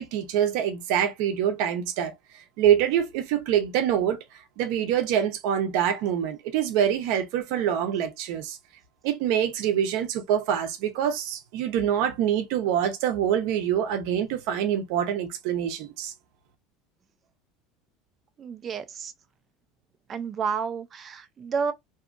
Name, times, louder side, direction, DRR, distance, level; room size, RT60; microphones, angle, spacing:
voice 1, 0.0-2.1 2.6-4.2 4.6-8.6 9.0-16.1, right 9 dB, 65° right, 0.7 m, -25 dB
voice 2, 18.4-19.1 20.1-21.7, right 6 dB, 25° right, 0.4 m, -30 dB
2.7 x 2.4 x 2.5 m
cardioid pair, 155°, 0 cm